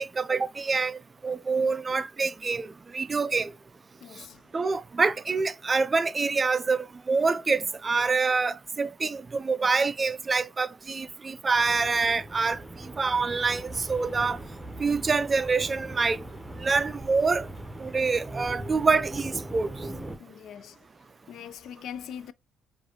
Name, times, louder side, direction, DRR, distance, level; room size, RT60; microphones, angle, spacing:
voice 1, 0.0-3.5 4.5-12.6 13.0-14.4 14.8-16.2 16.6-17.4 17.8-19.7, right 4 dB, 35° right, 0.3 m, -26 dB
voice 2, 4.0-4.4 20.2-20.8 21.3-22.3, left 9 dB, 70° left, 0.3 m, -41 dB
sound 1, 11.6-20.2, right 1 dB, 10° right, 0.9 m, -40 dB
4.7 x 2.5 x 2.8 m
hypercardioid pair, 55°, 0 cm